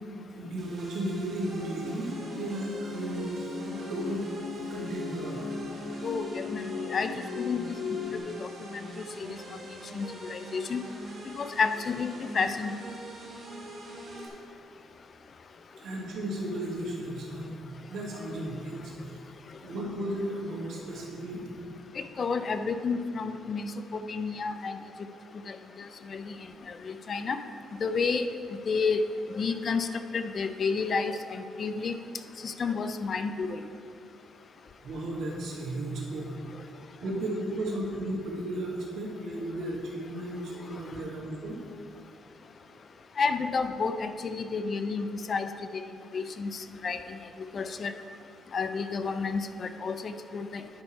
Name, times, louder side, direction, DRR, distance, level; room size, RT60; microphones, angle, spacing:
voice 1, 0.3-3.5 3.8-4.2 4.6-5.4 15.8-17.5 17.9-19.2 19.6-21.4 34.8-36.3 37.0-41.6, right 1 dB, 70° right, -3 dB, 1.9 m, -34 dB
sound 1, 0.6-14.3, right 1 dB, 50° right, 1.8 m, -43 dB
sound 2, 1.5-8.2, left 5 dB, 85° left, 1.8 m, -38 dB
voice 2, 6.0-7.1 7.4-7.6 8.1-8.5 9.2-9.3 9.9-10.8 11.4-12.1 12.3-12.7 22.0-24.8 25.5-25.6 26.1-26.3 26.8-27.4 27.8-28.3 28.7-29.0 29.3-29.9 30.1-31.9 32.4-33.6 43.2-45.5 46.1-47.0 47.5-47.9 48.5-50.6, left 5 dB, 40° left, 9 dB, 0.4 m, -30 dB
9.6 x 5.7 x 4.5 m, 2.4 s
cardioid pair, 115°, 0 cm